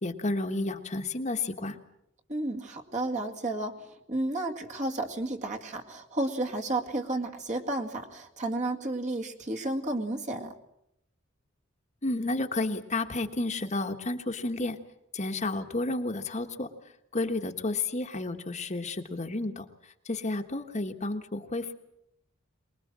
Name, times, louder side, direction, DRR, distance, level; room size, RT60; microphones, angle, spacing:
voice 1, 0.0-1.8 12.0-14.8 15.1-16.7 17.1-21.7, left 2 dB, 35° left, 5 dB, 1.4 m, -31 dB
voice 2, 2.3-10.5, right 2 dB, 35° right, 2 dB, 2.1 m, -32 dB
24.0 x 21.0 x 7.5 m, 0.80 s
head